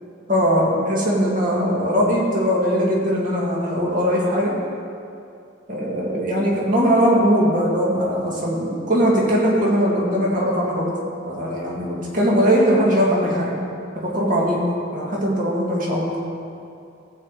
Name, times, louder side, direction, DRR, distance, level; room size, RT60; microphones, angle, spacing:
voice 1, 0.3-4.5 5.7-10.9 11.2-13.6 13.9-14.6 14.9-16.2, equal, 40° right, -4 dB, 2.3 m, -20 dB
15.0 x 5.0 x 8.2 m, 2.5 s
head